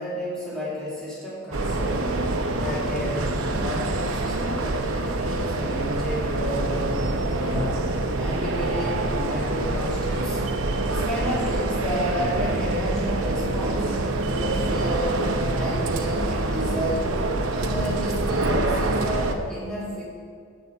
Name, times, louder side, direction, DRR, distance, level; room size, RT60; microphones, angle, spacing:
voice 1, 0.0-2.1 2.6-7.8 8.2-10.4 10.9-13.9 14.4-17.1 17.5-20.0, equal, 5° left, -7 dB, 2.1 m, -31 dB
sound 1, 1.5-19.4, right 2 dB, 70° right, 0.7 m, -26 dB
15.0 x 5.4 x 5.5 m, 2.2 s
head